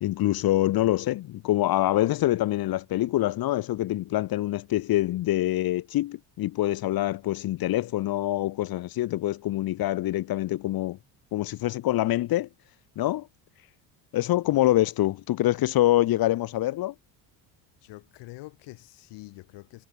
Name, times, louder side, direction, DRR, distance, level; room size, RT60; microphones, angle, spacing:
voice 1, 0.0-11.0 11.3-12.5 13.0-13.3 14.1-16.9, left 15 dB, 55° left, 1.2 m, -25 dB
voice 2, 17.8-19.9, left 20 dB, 80° left, 6.3 m, -45 dB
cardioid pair, 110°, 42 cm